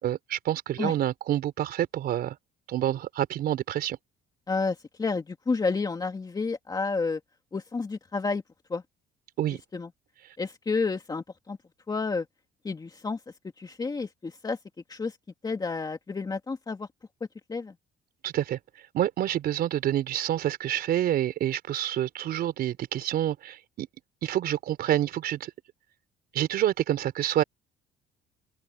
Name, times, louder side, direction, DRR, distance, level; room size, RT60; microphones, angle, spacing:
voice 1, 0.0-2.4 2.7-4.0 9.4-9.6 18.2-18.6 18.9-23.9 24.2-25.5 26.3-27.4, right 12 dB, 65° right, 4.5 m, -27 dB
voice 2, 4.5-7.2 7.5-8.4 8.7-8.8 9.5-9.9 10.4-11.6 11.9-12.3 12.6-13.2 13.6-14.6 14.9-15.2 15.4-16.9 17.5-17.7, left 4 dB, 25° left, 2.5 m, -30 dB
cardioid pair, 110°, 17 cm